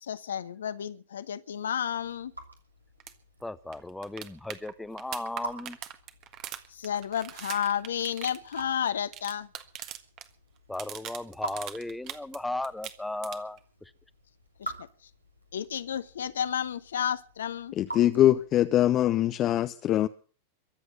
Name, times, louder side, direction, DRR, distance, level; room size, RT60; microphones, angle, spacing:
voice 1, 0.0-2.3 6.7-9.5 14.6-14.7 15.5-17.7, left 9 dB, 65° left, 1.0 m, -31 dB
Raindrop / Drip, 1.6-18.8, right 2 dB, 85° right, 2.8 m, -47 dB
sound 1, 3.0-3.1 3.4-3.5 3.7-10.3 10.6-12.4 12.6-13.6 15.6-15.7, right 11 dB, 40° right, 1.5 m, -41 dB
voice 2, 3.4-5.8 10.7-13.6, left 2 dB, 5° left, 0.8 m, -36 dB
voice 3, 17.7-20.1, left 12 dB, 35° left, 0.7 m, -23 dB
23.0 x 8.0 x 6.7 m
figure-of-eight pair, 90°, 0 cm